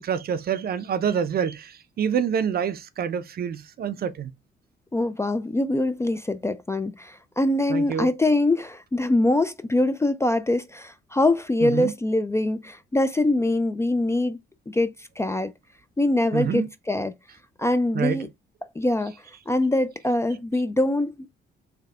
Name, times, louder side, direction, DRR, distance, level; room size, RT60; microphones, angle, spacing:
voice 1, 0.0-4.3 7.7-8.1 11.6-11.9 16.3-16.7 17.9-18.2, right 8 dB, 50° right, 0.5 m, -27 dB
voice 2, 4.9-14.4 14.7-15.5 16.0-17.1 17.6-18.3 18.8-19.1 19.5-21.3, left 2 dB, 15° left, 0.3 m, -23 dB
3.4 x 2.2 x 3.5 m
cardioid pair, 90°, 20 cm